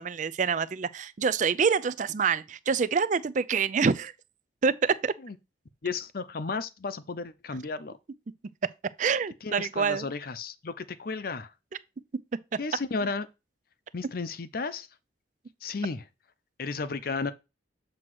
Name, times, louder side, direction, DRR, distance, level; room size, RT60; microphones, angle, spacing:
voice 1, 0.0-4.1 4.6-5.1 9.0-10.1, right 5 dB, 45° right, 0.4 m, -26 dB
voice 2, 5.8-8.0 9.4-11.5 12.6-13.3 13.9-14.9 15.6-16.1 16.6-17.3, left 4 dB, 55° left, 0.6 m, -33 dB
7.6 x 3.0 x 6.1 m
head